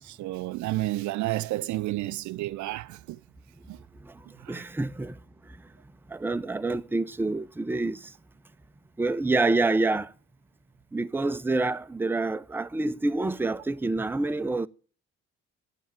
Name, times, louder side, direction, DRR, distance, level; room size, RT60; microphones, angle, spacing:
voice 1, 0.0-3.2 3.7-3.8 4.4-4.6, right 17 dB, 50° right, 0.5 m, -31 dB
voice 2, 4.5-5.1 6.1-8.0 9.0-10.1 10.9-14.7, right 2 dB, 5° right, 0.6 m, -27 dB
9.3 x 8.2 x 9.1 m
figure-of-eight pair, 45°, 38 cm